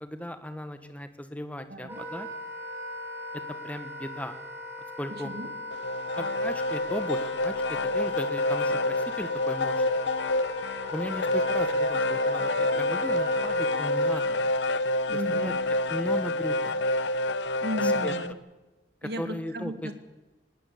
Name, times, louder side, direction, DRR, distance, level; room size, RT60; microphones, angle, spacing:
voice 1, 0.0-2.3 3.3-4.4 5.0-5.3 6.2-10.0 10.9-14.4 15.1-15.5 15.9-16.7 18.0-18.1 19.0-19.9, equal, 10° left, 8 dB, 1.4 m, -37 dB
voice 2, 1.7-2.1 5.1-5.5 15.1-15.6 17.6-18.4 19.0-19.9, equal, 60° right, 8 dB, 2.0 m, -35 dB
Wind instrument woodwind instrument, 1.9-14.2, left 2 dB, 10° right, 4.5 m, -38 dB
sound 1, 5.7-18.3, left 2 dB, 85° left, 0.9 m, -27 dB
19.5 x 19.5 x 8.5 m, 1.1 s
head